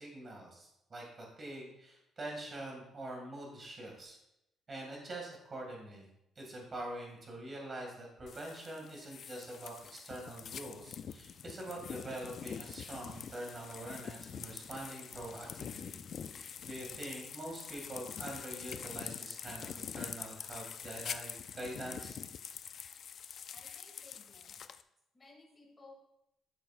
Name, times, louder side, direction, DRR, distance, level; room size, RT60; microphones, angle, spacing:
voice 1, 0.0-4.2 4.7-6.1 6.4-15.9 16.3-22.2, right 1 dB, 25° right, -1 dB, 2.2 m, -45 dB
sound 1, 8.3-24.8, left 7 dB, 40° left, 0.3 m, -45 dB
voice 2, 23.5-24.6 25.1-26.0, left 3 dB, 20° left, -2 dB, 2.3 m, -58 dB
12.5 x 6.9 x 2.5 m, 0.84 s
cardioid pair, 175°, 0 cm